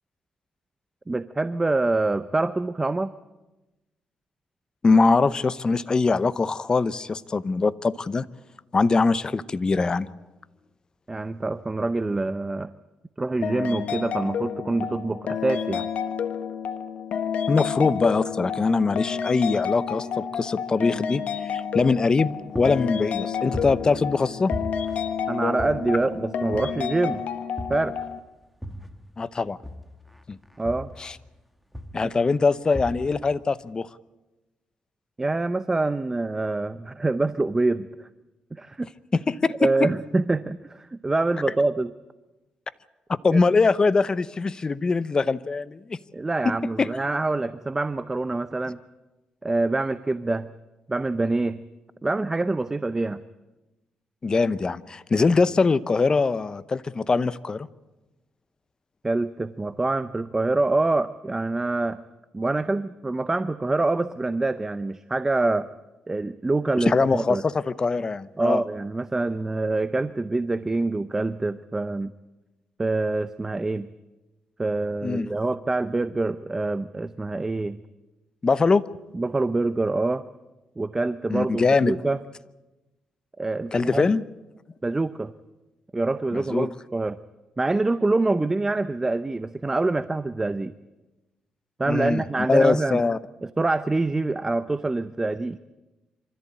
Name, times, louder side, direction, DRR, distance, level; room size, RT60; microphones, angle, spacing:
voice 1, 1.1-3.1 11.1-12.7 13.2-15.9 25.3-27.2 27.7-28.0 30.6-30.9 35.2-38.1 38.5-38.9 39.6-41.9 43.3-43.4 46.1-48.8 49.4-50.5 50.9-51.6 52.0-53.2 59.0-62.0 62.3-65.7 66.1-67.4 68.4-72.1 72.8-73.9 74.6-77.8 79.1-80.2 80.8-82.2 83.4-84.1 84.8-85.3 85.9-87.2 87.6-90.7 91.8-93.0 93.4-95.6, right 2 dB, 20° right, 13 dB, 0.6 m, -25 dB
voice 2, 4.8-8.3 8.7-10.1 17.5-24.5 29.2-29.6 30.3-30.4 31.0-31.2 31.9-33.9 39.1-39.7 43.2-46.0 46.4-46.9 54.2-57.7 66.8-68.6 75.0-75.3 78.4-78.8 81.3-82.0 83.7-84.2 86.3-86.7 91.9-92.2 92.5-93.2, left 4 dB, 30° left, 15 dB, 0.8 m, -22 dB
sound 1, 13.4-28.2, left 7 dB, 70° left, 1.4 m, -30 dB
sound 2, 21.8-22.2 22.6-24.2 24.5-26.1 26.5-27.1 27.6-29.1 29.6-31.4 31.7-32.2 32.7-33.3, left 1 dB, ahead, 1.4 m, -37 dB
25.0 x 14.0 x 8.7 m, 1.1 s
cardioid pair, 100°, 3 cm